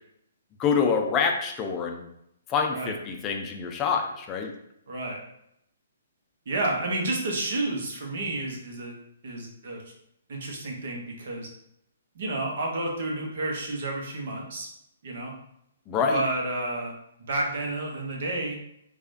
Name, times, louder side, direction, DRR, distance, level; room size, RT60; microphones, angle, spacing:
voice 1, 0.6-2.1 2.5-4.5 15.9-16.2, left 6 dB, 25° left, 3 dB, 0.5 m, -26 dB
voice 2, 4.9-5.2 6.5-8.9 9.2-9.8 10.3-11.5 12.1-14.7 15.0-15.3 16.1-16.9 17.3-18.6, right 2 dB, 60° right, 0 dB, 1.1 m, -30 dB
4.7 x 2.4 x 2.6 m, 0.77 s
figure-of-eight pair, 130°, 0 cm